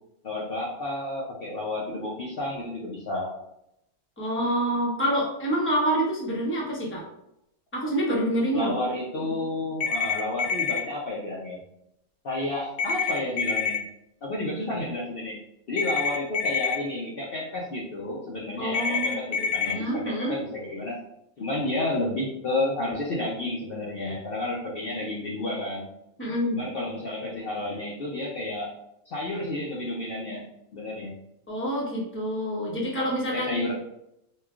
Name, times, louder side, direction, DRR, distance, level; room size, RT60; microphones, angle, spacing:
voice 1, 0.2-3.3 8.5-11.6 12.2-13.8 14.2-15.4 15.7-20.9 21.4-25.9 26.5-28.7 29.1-30.4 30.7-31.1 33.3-33.7, left 2 dB, 55° left, -4 dB, 0.7 m, -31 dB
voice 2, 4.2-7.0 7.7-8.7 18.6-19.2 19.6-20.4 26.2-26.6 31.5-33.6, equal, 10° left, -5 dB, 0.8 m, -27 dB
sound 1, 9.8-10.8 12.8-13.8 15.8-16.8 18.7-19.7, left 5 dB, 80° left, 1.0 m, -26 dB
4.7 x 2.3 x 2.4 m, 0.80 s
omnidirectional pair, 1.4 m